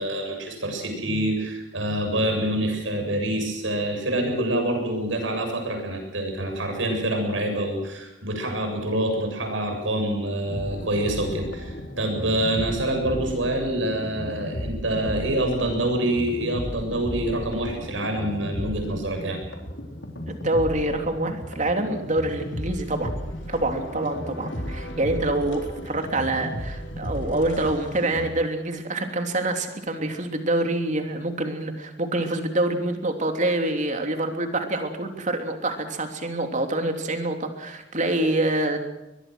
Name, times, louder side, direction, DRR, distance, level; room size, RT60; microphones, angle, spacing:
voice 1, 0.0-19.4, right 1 dB, 85° right, 4 dB, 7.7 m, -26 dB
sound 1, 10.4-28.3, equal, 75° left, 4.0 m, -34 dB
voice 2, 20.2-23.1 23.5-38.8, right 2 dB, 40° right, 5 dB, 3.2 m, -26 dB
22.5 x 21.5 x 6.4 m, 0.96 s
head